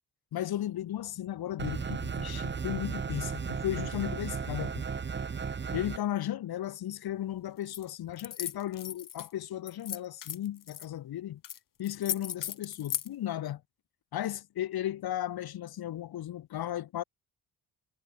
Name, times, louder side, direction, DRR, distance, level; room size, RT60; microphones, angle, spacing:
voice 1, 0.3-4.8 5.7-11.4 11.8-13.6 14.1-17.0, left 12 dB, 85° left, 1.7 m, -35 dB
sound 1, 1.6-6.0, right 6 dB, 30° right, 1.2 m, -35 dB
sound 2, 7.7-7.8 8.2-9.3 9.7-10.9 11.4-11.6 11.8-13.1, left 10 dB, 60° left, 1.9 m, -36 dB
cardioid pair, 130°, 36 cm